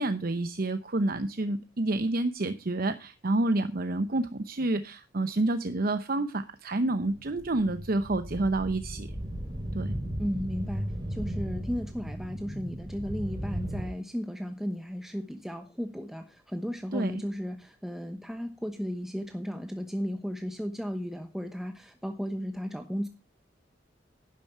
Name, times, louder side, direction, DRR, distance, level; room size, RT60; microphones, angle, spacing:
voice 1, 0.0-9.1 9.7-10.0 16.9-17.2, right 2 dB, 55° right, 10 dB, 0.8 m, -29 dB
sound 1, 7.1-13.9, equal, 25° right, 5.7 m, -36 dB
voice 2, 10.2-23.1, equal, ahead, 6 dB, 1.0 m, -35 dB
11.5 x 11.0 x 4.5 m, 0.28 s
head